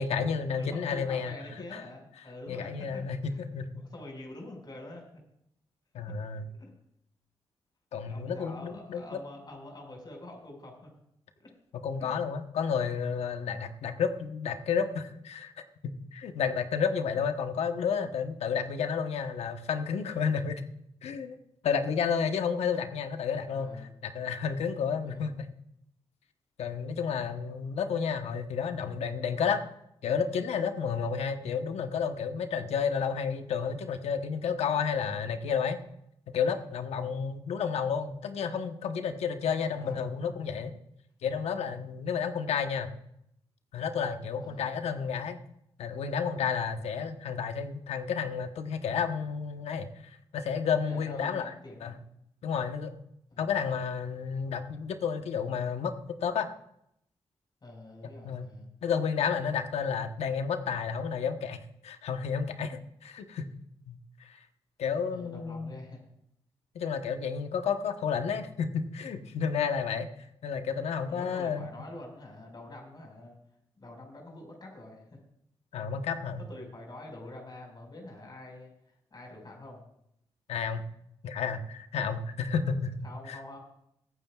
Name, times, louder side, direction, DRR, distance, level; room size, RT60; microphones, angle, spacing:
voice 1, 0.0-1.4 1.7-1.8 2.5-3.8 5.9-6.4 7.9-9.0 11.7-15.5 15.8-20.6 21.0-21.4 21.6-23.8 24.0-25.5 26.6-29.6 30.0-35.8 36.3-40.8 41.2-42.9 43.7-45.4 45.8-51.5 51.8-52.0 52.4-53.0 53.4-55.9 56.2-56.5 58.2-58.5 58.8-63.4 63.9-64.4 64.8-65.8 66.7-70.1 70.4-71.7 75.7-76.4 80.5-80.8 81.2-83.0 83.3-83.4, left 6 dB, 85° left, 7 dB, 1.0 m, -31 dB
voice 2, 0.5-3.4 3.8-5.0 6.6-6.7 8.1-10.9 12.0-12.1 23.5-23.9 25.0-25.3 27.7-27.8 36.9-37.1 39.7-40.0 44.4-44.7 50.8-52.0 53.3-53.5 57.6-58.7 65.1-66.0 71.1-73.4 73.8-75.2 76.5-78.7 79.1-79.8 83.0-83.6, left 1 dB, 45° left, 0 dB, 5.0 m, -46 dB
22.5 x 9.4 x 2.4 m, 0.75 s
cardioid pair, 55°, 11 cm